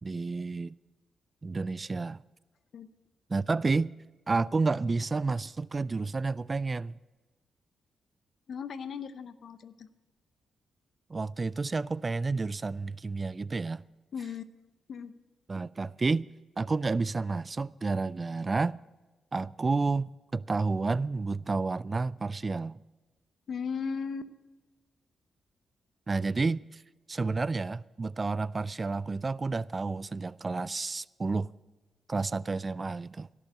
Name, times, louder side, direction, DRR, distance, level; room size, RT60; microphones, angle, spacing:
voice 1, 0.0-0.8 1.4-2.2 3.3-3.9 4.3-6.9 11.1-13.8 15.5-16.3 16.6-18.8 19.3-22.8 26.1-26.8 27.1-31.5 32.1-33.3, right 3 dB, 35° right, 0.3 m, -30 dB
voice 2, 8.5-9.9 14.1-14.4 14.9-15.1 23.5-24.3, left 6 dB, 65° left, 0.7 m, -36 dB
16.5 x 6.9 x 7.8 m
supercardioid pair, 50°, 0 cm